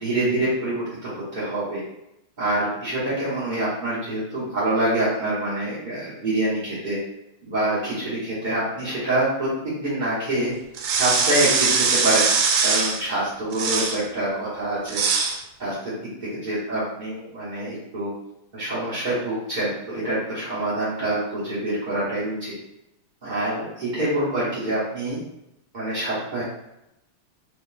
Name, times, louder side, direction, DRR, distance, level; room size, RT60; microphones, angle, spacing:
voice 1, 0.0-1.8 2.4-7.0 7.4-10.5 11.0-12.3 12.6-15.0 15.6-18.1 18.5-22.5 23.2-25.2 25.7-26.4, right 1 dB, 40° right, -11 dB, 0.7 m, -26 dB
sound 1, 10.7-13.0 13.5-14.0 14.9-15.4, right 5 dB, 90° right, 1.4 m, -21 dB
3.4 x 2.2 x 3.8 m, 0.86 s
omnidirectional pair, 2.3 m